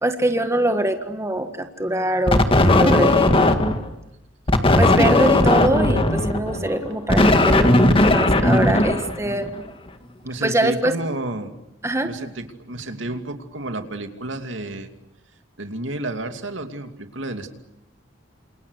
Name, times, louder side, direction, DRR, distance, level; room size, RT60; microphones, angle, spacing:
voice 1, 0.0-3.7 4.8-9.5 10.4-10.9 11.8-12.1, right 1 dB, 15° right, 7 dB, 1.6 m, -23 dB
sound 1, 2.3-3.9 4.5-9.6, left 2 dB, 30° left, 2.0 m, -17 dB
voice 2, 10.2-11.5 12.0-14.9 15.6-17.5, right 2 dB, 75° right, 6 dB, 2.7 m, -31 dB
29.0 x 27.5 x 6.6 m, 0.87 s
head